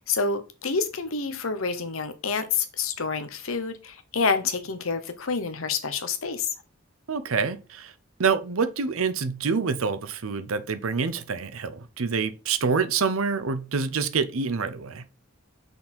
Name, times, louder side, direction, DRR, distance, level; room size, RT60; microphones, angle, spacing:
voice 1, 0.0-6.5, left 5 dB, 75° left, 0.9 m, -28 dB
voice 2, 7.1-7.9 8.2-15.0, right 5 dB, 80° right, 0.7 m, -26 dB
6.1 x 4.1 x 4.4 m
head